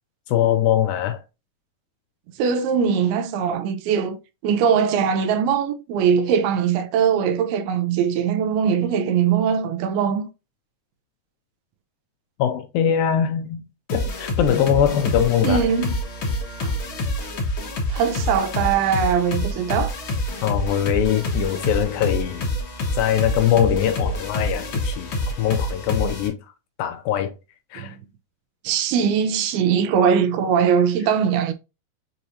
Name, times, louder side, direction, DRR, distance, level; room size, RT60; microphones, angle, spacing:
voice 1, 0.3-1.2 12.4-13.6 13.9-15.6 20.4-22.5 22.9-25.1 25.4-26.4 26.8-27.3 27.7-28.0, left 10 dB, 80° left, 2.2 m, -22 dB
voice 2, 2.4-4.2 4.4-10.3 15.4-16.0 16.6-16.7 17.9-19.9 27.8-27.9 28.6-31.5, right 7 dB, 85° right, 2.5 m, -21 dB
sound 1, 13.9-26.3, left 1 dB, 60° left, 1.3 m, -27 dB
6.5 x 2.9 x 2.7 m
omnidirectional pair, 4.5 m